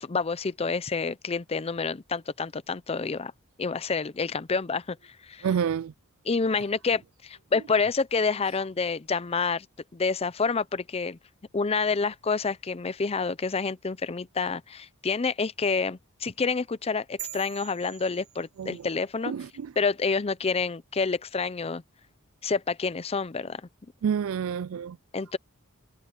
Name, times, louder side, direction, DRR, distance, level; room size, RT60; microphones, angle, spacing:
voice 1, 0.0-3.3 3.6-5.0 5.2-5.5 6.3-9.7 9.9-11.2 11.5-19.3 19.8-21.8 22.4-23.6 25.1-25.4, left 4 dB, 30° left, 0.5 m, -28 dB
voice 2, 5.4-5.9 18.6-18.9 19.3-19.7 24.0-25.0, right 7 dB, 70° right, 0.3 m, -28 dB
sound 1, 17.2-18.9, right 15 dB, 85° right, 2.2 m, -43 dB
head